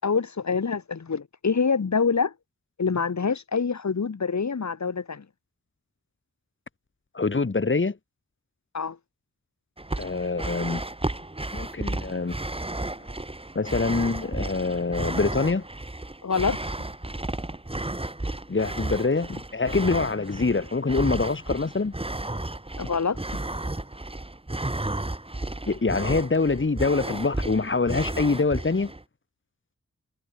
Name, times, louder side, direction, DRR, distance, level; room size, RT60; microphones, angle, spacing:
voice 1, 0.0-2.3 2.8-5.2 8.7-9.0 16.2-16.6 22.8-23.2, left 5 dB, 70° left, 6.2 m, -25 dB
voice 2, 7.1-8.0 10.0-10.8 11.5-12.4 13.5-15.6 18.5-21.9 25.7-28.9, left 3 dB, 40° left, 5.6 m, -25 dB
sound 1, 9.8-29.0, right 2 dB, 20° right, 5.7 m, -33 dB
wide cardioid pair, 110°, 29 cm